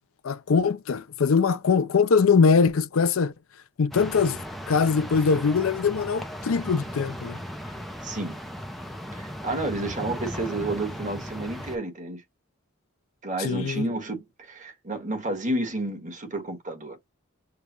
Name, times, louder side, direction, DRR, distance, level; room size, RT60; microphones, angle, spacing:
voice 1, 0.2-3.3 3.8-4.4 4.7-7.4 13.4-13.9, left 5 dB, 75° left, 0.5 m, -22 dB
sound 1, 3.9-11.8, equal, ahead, 0.6 m, -37 dB
voice 2, 8.0-8.4 9.1-12.2 13.2-17.0, right 2 dB, 35° right, 1.5 m, -31 dB
6.7 x 2.3 x 2.8 m
head